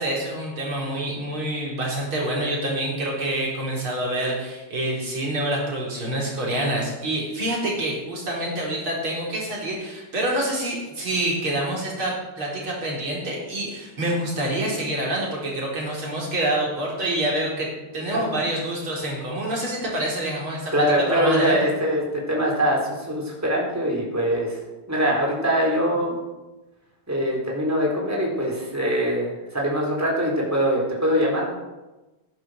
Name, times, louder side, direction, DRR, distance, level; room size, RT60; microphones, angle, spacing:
voice 1, 0.0-20.7 21.1-21.6, right 1 dB, 80° right, -3 dB, 5.1 m, -27 dB
voice 2, 20.7-24.6 24.9-26.2 27.1-31.5, equal, 5° right, -2 dB, 4.0 m, -23 dB
16.0 x 10.5 x 6.7 m, 1.1 s
omnidirectional pair, 2.3 m